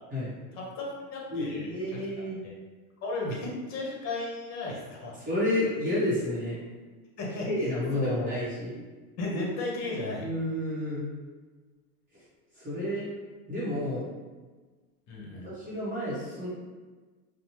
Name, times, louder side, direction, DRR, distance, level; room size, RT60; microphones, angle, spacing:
voice 1, 0.5-2.1 2.4-2.5 3.0-5.1 7.2-7.5 7.9-8.3 9.2-10.2 15.1-15.5, left 2 dB, 35° left, -3 dB, 0.8 m, -34 dB
voice 2, 1.3-2.4 5.2-6.6 7.4-8.8 10.2-11.1 12.1-12.2 12.5-13.1 13.5-14.1 15.4-16.5, left 1 dB, 20° right, -10 dB, 1.0 m, -30 dB
2.8 x 2.0 x 3.0 m, 1.3 s
supercardioid pair, 130°, 46 cm